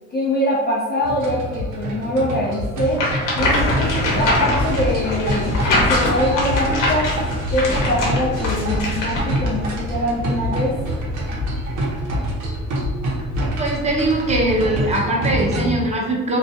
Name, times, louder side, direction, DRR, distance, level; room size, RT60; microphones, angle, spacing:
voice 1, 0.1-3.1 3.4-7.1 7.5-10.8, left 1 dB, 35° left, -4 dB, 0.4 m, -23 dB
sound 1, 1.0-15.8, right 1 dB, 80° right, 0.7 m, -26 dB
sound 2, 2.9-9.4, left 1 dB, 80° left, 0.8 m, -23 dB
sound 3, 3.5-14.9, left 1 dB, 50° left, 0.9 m, -30 dB
voice 2, 13.6-16.4, right 1 dB, 20° right, -3 dB, 0.7 m, -21 dB
2.3 x 2.0 x 2.7 m, 1.3 s
cardioid pair, 90°, 30 cm